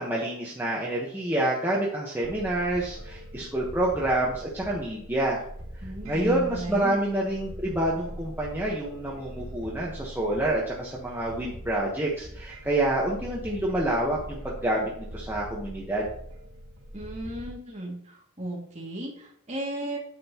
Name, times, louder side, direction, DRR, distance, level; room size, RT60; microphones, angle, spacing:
voice 1, 0.0-5.4 6.0-16.1, right 1 dB, 10° right, -5 dB, 1.2 m, -28 dB
sound 1, 2.2-17.5, equal, 70° right, 1.9 m, -42 dB
voice 2, 5.8-7.0 16.9-20.0, right 1 dB, 30° right, -2 dB, 2.4 m, -35 dB
9.3 x 7.8 x 3.0 m, 0.66 s
head